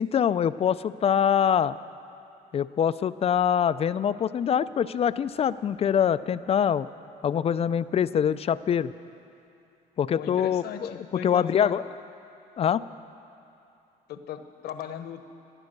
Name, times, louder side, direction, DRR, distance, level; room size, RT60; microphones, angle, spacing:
voice 1, 0.0-1.8 2.5-6.9 7.2-8.9 10.0-11.8 12.6-12.9, left 8 dB, 35° left, 15 dB, 0.4 m, -24 dB
voice 2, 10.1-11.7 14.1-15.3, left 8 dB, 70° left, 9 dB, 1.0 m, -37 dB
18.0 x 11.5 x 6.6 m, 2.8 s
cardioid pair, 110°, 17 cm